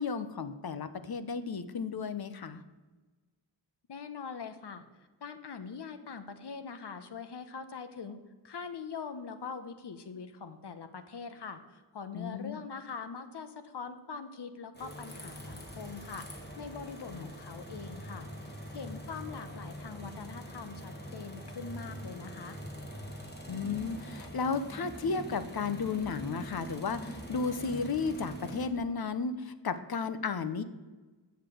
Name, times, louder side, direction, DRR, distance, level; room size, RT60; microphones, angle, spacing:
voice 1, 0.0-2.6 12.1-12.6 17.1-17.3 23.5-30.6, left 5 dB, 65° left, 12 dB, 0.8 m, -34 dB
voice 2, 3.9-4.8 5.2-8.2 8.4-22.6, left 5 dB, 90° left, 9 dB, 1.0 m, -43 dB
sound 1, 14.7-28.7, equal, 25° left, 2.0 m, -43 dB
8.1 x 6.7 x 7.7 m, 1.3 s
wide cardioid pair, 105°, 40 cm